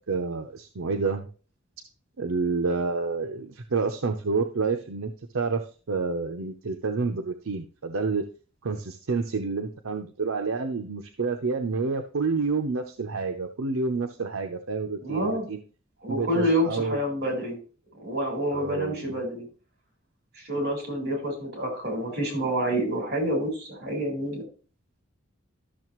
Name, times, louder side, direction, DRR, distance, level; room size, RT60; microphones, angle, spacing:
voice 1, 0.1-1.3 2.2-5.6 5.9-8.2 8.6-15.6 16.1-17.0 18.5-19.1, right 4 dB, 85° right, 5 dB, 0.7 m, -29 dB
voice 2, 15.0-15.4 16.0-17.6 18.0-19.4 20.4-24.4, equal, 55° right, 1 dB, 4.2 m, -28 dB
12.5 x 6.5 x 3.0 m, 0.38 s
head